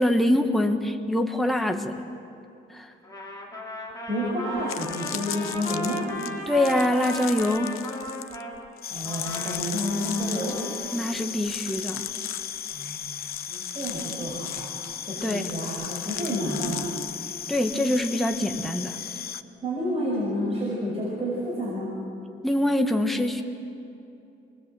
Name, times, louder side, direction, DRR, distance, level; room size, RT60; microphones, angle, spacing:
voice 1, 0.0-1.9 2.7-2.9 6.5-7.7 10.9-12.1 15.2-15.5 17.5-19.0 22.4-23.4, left 1 dB, ahead, 4 dB, 1.2 m, -24 dB
Trumpet, 3.0-8.5 9.0-11.0, equal, 15° left, 3.5 m, -36 dB
sound 1, 4.1-4.2 4.6-18.1 18.3-18.7, left 12 dB, 80° left, 0.8 m, -38 dB
voice 2, 4.1-6.1 8.9-10.6 12.7-13.0 13.5-14.7 15.0-16.9 19.6-21.9, equal, 30° right, -5 dB, 5.7 m, -30 dB
sound 2, 8.8-19.4, left 8 dB, 45° left, 0.8 m, -36 dB
27.5 x 20.5 x 7.9 m, 2.8 s
cardioid pair, 145°, 21 cm